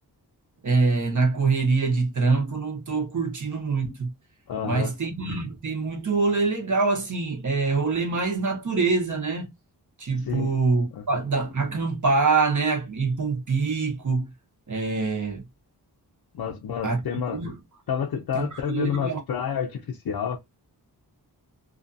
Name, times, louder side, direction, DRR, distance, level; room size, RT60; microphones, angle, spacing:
voice 1, 0.6-4.1 4.6-9.5 10.0-14.3 14.7-15.4 16.8-17.0 17.3-17.6 18.3-19.2, right 4 dB, 50° right, 0.9 m, -25 dB
voice 2, 4.5-4.9 10.2-10.6 10.9-11.0 16.3-17.4 17.9-20.4, left 7 dB, 65° left, 0.5 m, -29 dB
2.5 x 2.4 x 2.6 m
cardioid pair, 65°, 40 cm